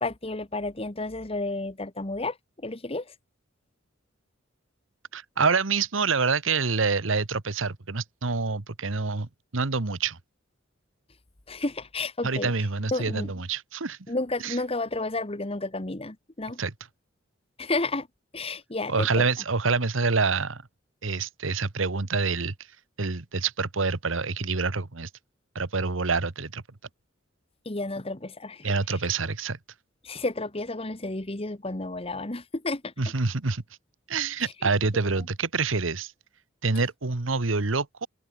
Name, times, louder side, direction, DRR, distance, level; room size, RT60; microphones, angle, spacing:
voice 1, 0.0-2.4 2.6-3.1 11.5-12.5 12.9-13.3 14.1-16.6 17.6-18.1 18.3-19.2 27.6-28.8 30.0-32.9 34.4-34.7, left 2 dB, 30° left, 1.5 m, -31 dB
voice 2, 5.1-10.2 12.2-14.0 14.4-14.6 16.6-16.7 18.9-20.6 21.0-22.5 23.0-25.1 25.5-26.6 28.6-29.6 33.0-33.6 34.1-36.1 36.6-38.1, right 4 dB, 85° right, 1.3 m, -27 dB
open air
head